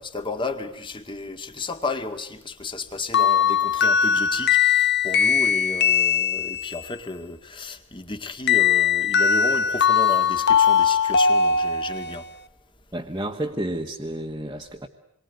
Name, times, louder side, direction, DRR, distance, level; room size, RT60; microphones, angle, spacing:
voice 1, 0.0-12.2, left 3 dB, 20° left, 1.9 m, -33 dB
sound 1, 3.1-6.9 8.5-12.2, left 7 dB, 50° left, 1.1 m, -20 dB
voice 2, 12.9-14.9, right 1 dB, 15° right, 1.5 m, -30 dB
27.5 x 23.0 x 9.4 m
head